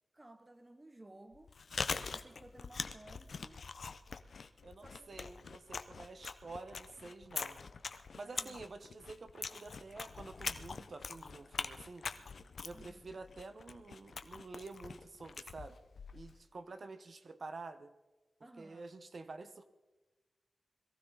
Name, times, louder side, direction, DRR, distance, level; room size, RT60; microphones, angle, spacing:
voice 1, 0.1-1.5 2.1-3.6 4.8-5.1 8.2-8.7 12.7-13.1 18.4-19.0, right 1 dB, 20° right, 10 dB, 0.7 m, -57 dB
Chewing mastication, 1.3-16.4, left 5 dB, 65° left, 0.7 m, -44 dB
voice 2, 4.6-7.6 8.1-12.1 12.6-15.8 16.1-17.9 18.6-19.6, right 3 dB, 55° right, 9 dB, 0.9 m, -49 dB
22.0 x 15.0 x 4.1 m, 1.1 s
wide cardioid pair, 135°, 0 cm